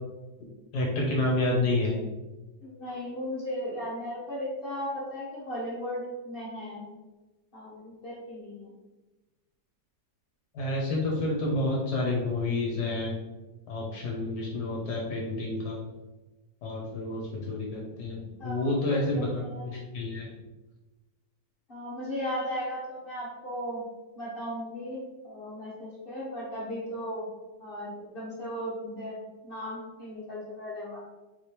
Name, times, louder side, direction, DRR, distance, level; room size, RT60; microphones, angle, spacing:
voice 1, 0.7-2.0 10.5-13.1 13.7-15.8 16.6-20.3, left 2 dB, 65° left, -2 dB, 1.3 m, -29 dB
voice 2, 2.6-6.8 7.5-8.7 18.4-19.7 21.7-23.8 24.2-27.3 27.6-29.2 29.4-31.1, equal, 40° left, -6 dB, 0.9 m, -36 dB
4.2 x 3.3 x 2.9 m, 1.1 s
omnidirectional pair, 2.0 m